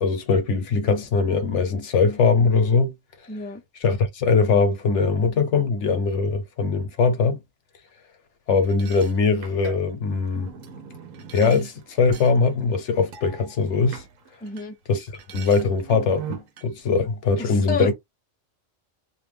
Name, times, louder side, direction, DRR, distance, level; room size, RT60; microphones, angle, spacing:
voice 1, 0.0-2.9 3.8-7.4 8.5-10.5 11.3-14.0 14.9-15.0 15.3-17.9, left 4 dB, 70° left, 1.1 m, -21 dB
voice 2, 3.3-3.6 14.4-14.7 17.4-17.9, left 4 dB, 15° left, 0.3 m, -30 dB
sound 1, 8.6-14.7 15.0-16.7, right 6 dB, 85° right, 1.1 m, -41 dB
2.6 x 2.2 x 3.4 m
omnidirectional pair, 1.3 m